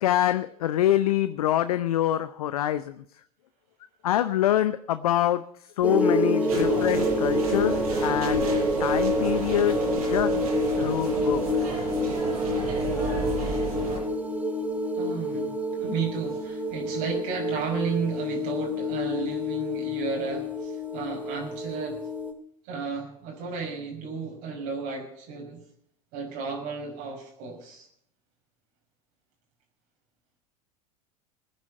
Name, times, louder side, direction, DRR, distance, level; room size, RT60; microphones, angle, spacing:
voice 1, 0.0-2.9 4.0-5.4 5.8-7.8 8.0-8.5 8.8-9.8 10.1-10.3 10.8-11.4, left 12 dB, 70° left, 12 dB, 0.7 m, -25 dB
sound 1, 5.8-22.3, left 1 dB, 5° right, 2.5 m, -27 dB
sound 2, 6.5-14.0, right 2 dB, 70° right, 7.7 m, -34 dB
voice 2, 14.9-22.1 22.6-25.6 26.1-27.9, right 5 dB, 55° right, 2 dB, 5.7 m, -33 dB
20.5 x 9.8 x 5.5 m, 0.68 s
figure-of-eight pair, 80°, 20 cm